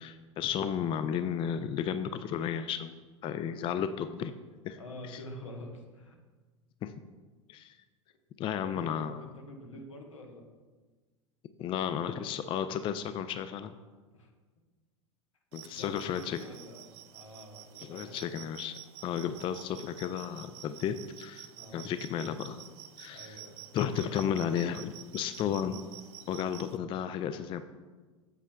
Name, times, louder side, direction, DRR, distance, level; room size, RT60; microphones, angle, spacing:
voice 1, 0.0-2.9 3.2-4.3 4.7-4.8 5.1-5.2 6.8-6.9 7.5-7.7 8.4-9.2 11.6-13.7 15.5-16.4 17.9-18.7 19.0-22.6 23.0-23.4 23.7-25.8 26.3-27.6, left 8 dB, 35° left, 11 dB, 0.4 m, -33 dB
voice 2, 4.8-6.2 8.6-10.5 14.1-14.3 15.6-18.2 21.6-21.9 23.1-23.6, left 1 dB, 85° left, 2 dB, 1.1 m, -47 dB
sound 1, 15.5-26.8, right 13 dB, 55° right, 0.4 m, -50 dB
8.0 x 7.3 x 2.3 m, 1.3 s
hypercardioid pair, 85°, 16 cm